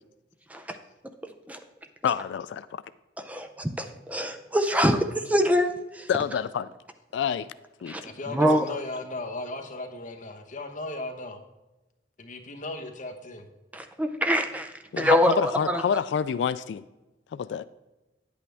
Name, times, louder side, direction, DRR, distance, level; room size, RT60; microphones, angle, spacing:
voice 1, 2.0-2.8 6.1-6.7 7.1-7.5 7.8-7.9 14.9-16.8 17.3-17.6, left 7 dB, 85° left, 14 dB, 0.3 m, -27 dB
voice 2, 3.2-6.1 7.9-8.0 8.3-8.7 13.7-15.8, equal, 10° right, 7 dB, 0.5 m, -25 dB
voice 3, 8.0-11.4 12.2-13.5, left 2 dB, 45° left, 3 dB, 1.1 m, -36 dB
9.6 x 8.4 x 3.4 m, 1.0 s
head